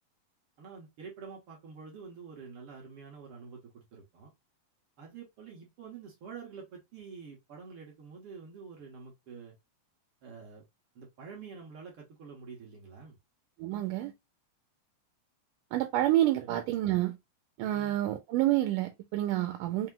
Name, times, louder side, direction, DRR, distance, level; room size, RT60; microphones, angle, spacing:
voice 1, 0.6-4.3 5.0-9.5 10.2-10.6 10.9-13.2 16.4-16.5 17.7-18.0, right 5 dB, 60° right, 1.5 m, -47 dB
voice 2, 13.6-14.1 15.7-17.2 17.6-19.9, right 14 dB, 80° right, 2.1 m, -28 dB
5.5 x 2.1 x 3.7 m
omnidirectional pair, 3.9 m